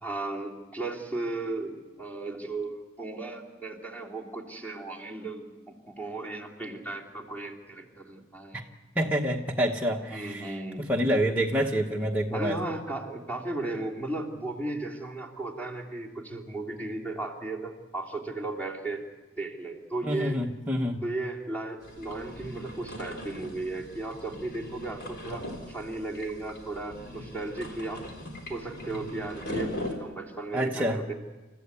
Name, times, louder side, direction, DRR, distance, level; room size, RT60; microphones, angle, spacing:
voice 1, 0.0-8.6 10.1-10.9 12.3-19.1 19.4-20.4 21.0-28.1 28.5-31.1, right 2 dB, 10° left, 0 dB, 3.1 m, -35 dB
voice 2, 8.9-12.6 20.0-21.0 30.5-31.0, equal, 10° right, -2 dB, 1.0 m, -27 dB
sound 1, 21.8-29.9, left 1 dB, 55° left, 3.9 m, -40 dB
29.5 x 14.5 x 8.3 m, 1.2 s
head